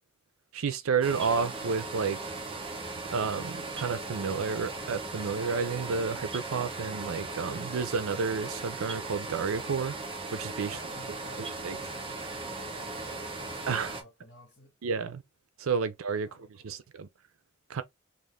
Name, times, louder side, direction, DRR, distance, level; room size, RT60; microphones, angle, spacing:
voice 1, 0.5-2.4 3.1-9.9 10.3-10.8 11.4-11.8 13.7-13.9 14.8-15.2 15.6-17.1 17.7-17.8, right 5 dB, 85° right, 0.5 m, -31 dB
sound 1, 1.0-14.0, right 3 dB, 25° right, 0.6 m, -38 dB
voice 2, 10.7-14.7 16.2-16.8, left 1 dB, 60° left, 1.2 m, -53 dB
2.5 x 2.4 x 3.4 m
head